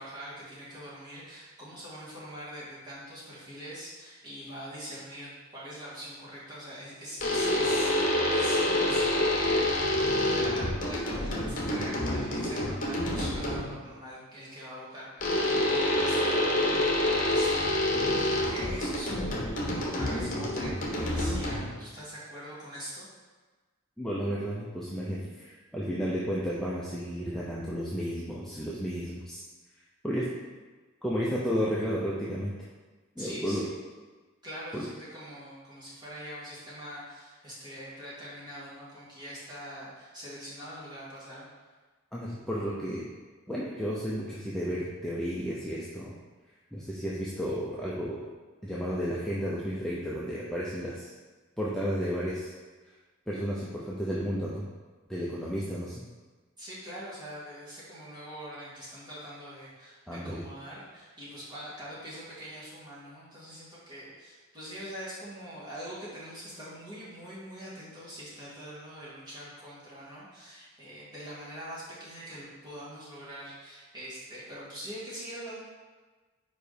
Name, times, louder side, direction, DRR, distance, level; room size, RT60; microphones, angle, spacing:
voice 1, 0.0-23.1 33.2-33.8 34.4-41.4 56.6-75.6, equal, 20° right, -9 dB, 2.2 m, -43 dB
sound 1, 7.2-13.8 15.2-21.9, left 1 dB, 40° left, 1.1 m, -27 dB
voice 2, 24.0-29.4 30.0-30.2 31.0-32.5 33.2-33.7 34.7-34.9 42.1-43.0 43.5-46.2 46.7-48.2 48.6-51.1 51.6-52.5 53.3-54.7 55.1-55.9 60.1-60.4, equal, ahead, -7 dB, 0.6 m, -32 dB
5.0 x 5.0 x 5.1 m, 1.3 s
head